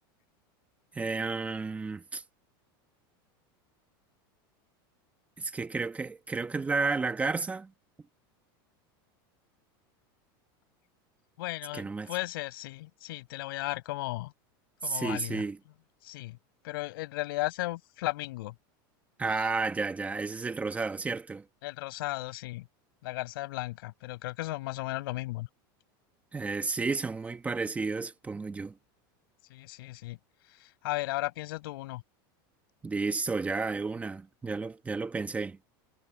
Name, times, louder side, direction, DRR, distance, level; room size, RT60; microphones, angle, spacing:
voice 1, 0.9-2.2 5.4-7.7 11.7-12.1 14.8-15.6 19.2-21.4 26.3-28.7 32.8-35.6, right 4 dB, 10° right, 1.3 m, -32 dB
voice 2, 11.4-14.3 14.8-15.4 16.0-16.4 16.6-18.5 19.4-19.5 21.6-22.7 23.0-25.5 29.5-30.2 30.5-32.0, left 18 dB, 75° left, 5.4 m, -35 dB
supercardioid pair, 150°, 12 cm